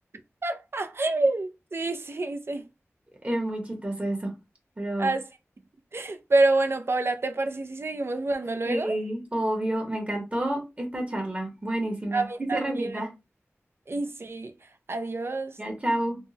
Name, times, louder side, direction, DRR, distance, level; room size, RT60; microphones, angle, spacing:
voice 1, 0.4-2.6 5.0-5.3 5.9-9.0 12.1-13.0 13.9-14.5 14.9-15.5, right 2 dB, 55° right, 0.4 m, -27 dB
voice 2, 3.2-4.3 4.8-5.1 8.6-12.2 12.5-13.1 15.6-16.2, right 1 dB, 25° right, 1.1 m, -29 dB
3.5 x 2.1 x 2.8 m
wide cardioid pair, 50°, 5 cm